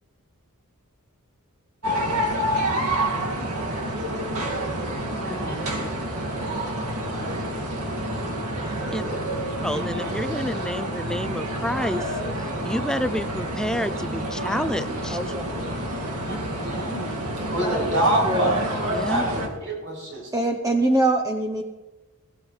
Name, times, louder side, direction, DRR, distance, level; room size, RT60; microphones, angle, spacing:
sound 1, 1.8-19.5, right 1 dB, 85° right, 2.2 m, -28 dB
voice 1, 5.2-5.7 9.7-10.1 16.2-18.6 19.1-20.3, right 1 dB, 55° right, -3 dB, 6.6 m, -27 dB
voice 2, 9.6-12.1 12.6-15.2 18.9-19.2, equal, 5° left, 12 dB, 0.4 m, -29 dB
voice 3, 15.1-15.4 18.2-18.6 20.3-21.6, right 2 dB, 15° right, 3 dB, 0.8 m, -23 dB
17.5 x 17.0 x 3.3 m, 1.1 s
head